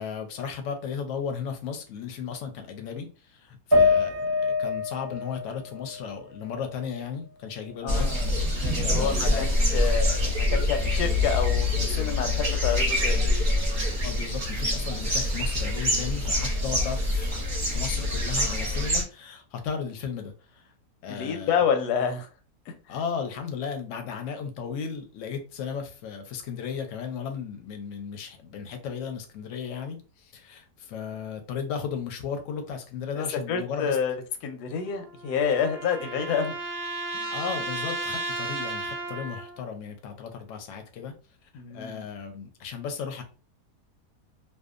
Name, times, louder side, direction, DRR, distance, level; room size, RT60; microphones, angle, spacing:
voice 1, 0.0-8.5 8.8-9.5 14.0-17.3 17.7-20.7 21.0-21.6 22.9-34.0 37.3-41.1 41.7-43.2, left 6 dB, 65° left, 0.8 m, -35 dB
sound 1, 3.7-7.1 7.5-8.5, left 3 dB, 25° right, 0.6 m, -27 dB
voice 2, 7.8-8.3 8.5-13.3 21.1-22.3 22.7-22.8 33.1-34.1 34.4-36.5 37.1-37.3 41.5-42.0, left 7 dB, 85° left, 1.1 m, -28 dB
sound 2, 7.9-19.0, left 1 dB, 40° right, 0.9 m, -25 dB
sound 3, 34.9-39.6, right 2 dB, 60° right, 0.6 m, -34 dB
2.7 x 2.3 x 2.4 m
omnidirectional pair, 1.7 m